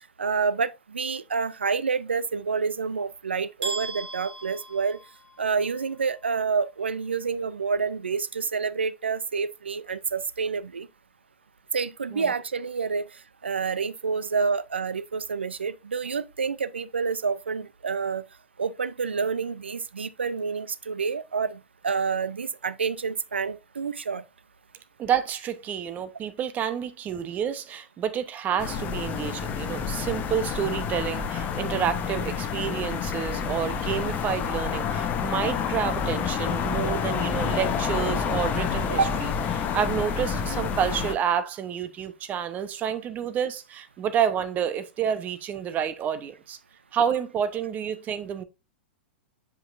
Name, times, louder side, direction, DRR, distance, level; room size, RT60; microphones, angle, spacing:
voice 1, 0.2-5.0 5.4-10.9 11.7-13.1 13.4-18.2 18.6-24.2 38.9-39.2, right 5 dB, 80° right, 0.5 m, -28 dB
sound 1, 3.6-5.6, right 3 dB, 60° right, 3.4 m, -36 dB
voice 2, 25.0-46.6 46.9-48.4, right 8 dB, 30° right, 0.8 m, -29 dB
sound 2, 28.6-41.1, left 6 dB, 30° left, 0.9 m, -28 dB
7.6 x 5.4 x 2.5 m
figure-of-eight pair, 100°, 6 cm